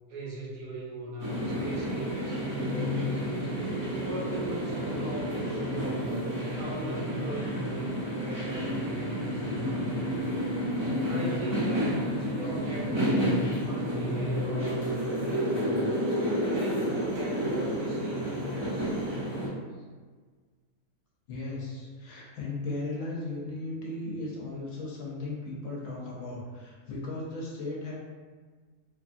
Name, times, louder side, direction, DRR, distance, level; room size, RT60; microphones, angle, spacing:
voice 1, 0.0-6.2 6.5-10.5 11.0-15.9 16.4-18.9, right 1 dB, 75° right, -5 dB, 1.2 m, -40 dB
sound 1, 1.2-19.5, equal, 40° right, 0.3 m, -30 dB
voice 2, 21.3-27.9, left 2 dB, 65° left, -4 dB, 1.0 m, -36 dB
2.9 x 2.3 x 2.5 m, 1.5 s
omnidirectional pair, 1.6 m